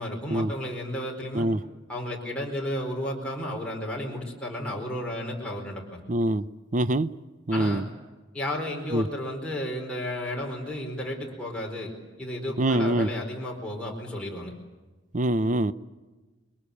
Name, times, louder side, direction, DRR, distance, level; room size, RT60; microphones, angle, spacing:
voice 1, 0.0-1.5 1.9-5.8 7.5-7.8 8.3-11.9 12.2-14.5, left 1 dB, 5° left, 4.6 m, -33 dB
voice 2, 6.1-6.4 6.7-7.1 7.5-7.8 8.9-9.0 12.6-13.1 15.1-15.7, right 1 dB, 40° right, 0.8 m, -24 dB
28.5 x 22.5 x 8.5 m
head